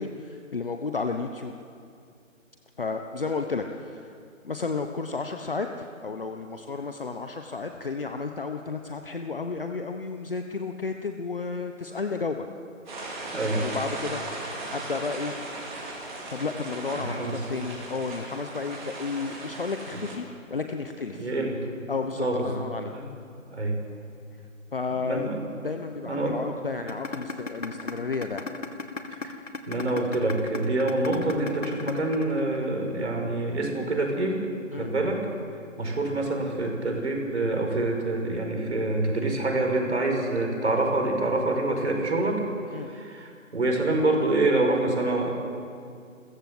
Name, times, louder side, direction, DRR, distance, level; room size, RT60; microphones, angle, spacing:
voice 1, 0.0-1.5 2.8-4.2 4.4-12.4 13.5-15.4 16.3-20.2 20.5-21.3 21.9-22.9 24.7-25.3 25.6-28.5 34.7-34.9 42.7-42.9, left 4 dB, 40° left, 5 dB, 1.1 m, -32 dB
sound 1, 12.9-20.2, right 2 dB, 35° right, 5.0 m, -37 dB
voice 2, 13.3-13.6 16.9-17.3 21.1-21.6 22.2-22.5 22.9-23.1 23.5-23.8 25.0-25.4 26.0-26.4 29.2-29.4 29.7-34.4 34.7-35.3 35.8-42.4 42.8-45.3, right 2 dB, 55° right, 2 dB, 5.4 m, -26 dB
sound 2, 26.9-32.9, left 4 dB, 65° left, 2.4 m, -34 dB
29.5 x 15.0 x 7.8 m, 2.3 s
figure-of-eight pair, 170°, 41 cm